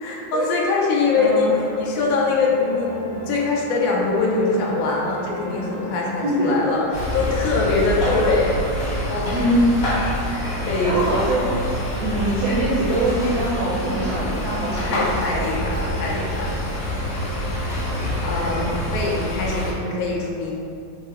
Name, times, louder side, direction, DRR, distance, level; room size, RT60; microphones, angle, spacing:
voice 1, 0.0-6.8 7.1-9.4 10.6-11.1 14.8-16.7 18.2-20.6, left 3 dB, 75° left, -3 dB, 0.8 m, -23 dB
sound 1, 1.0-18.8, left 2 dB, 90° left, 1.4 m, -38 dB
voice 2, 1.1-1.6 6.2-6.5 9.3-9.8 10.8-11.4 12.0-15.1 15.3-15.4 18.3-19.0, right 1 dB, 70° right, -8 dB, 1.0 m, -23 dB
sound 2, 6.9-19.7, equal, 55° left, 1.1 m, -26 dB
3.7 x 2.1 x 3.5 m, 2.5 s
omnidirectional pair, 2.1 m